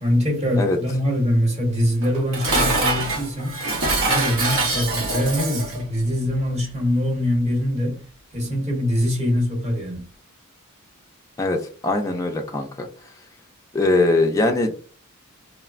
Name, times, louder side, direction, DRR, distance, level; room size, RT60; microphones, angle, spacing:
voice 1, 0.0-3.6 4.1-8.0 8.3-10.1, left 1 dB, 30° right, 1.0 m, -23 dB
Dishes pots and pans, 2.0-5.8, right 2 dB, 60° right, 0.8 m, -24 dB
voice 2, 11.4-12.9 13.7-14.8, left 2 dB, 15° left, 0.3 m, -21 dB
3.1 x 2.1 x 2.4 m
head